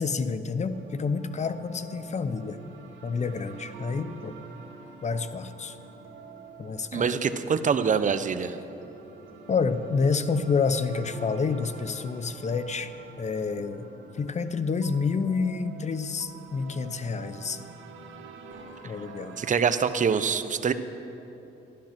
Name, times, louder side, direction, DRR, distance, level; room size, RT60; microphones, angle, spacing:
voice 1, 0.0-2.6 3.0-4.4 5.0-5.8 6.6-7.1 9.5-12.9 13.2-13.8 14.1-17.7 18.8-19.4, left 5 dB, 35° left, 12 dB, 0.7 m, -28 dB
sound 1, 0.7-20.1, right 4 dB, 75° right, 1.8 m, -47 dB
voice 2, 6.9-8.6 19.4-20.7, right 6 dB, 40° right, 11 dB, 0.7 m, -25 dB
13.5 x 12.0 x 6.0 m, 3.0 s
cardioid pair, 90°, 20 cm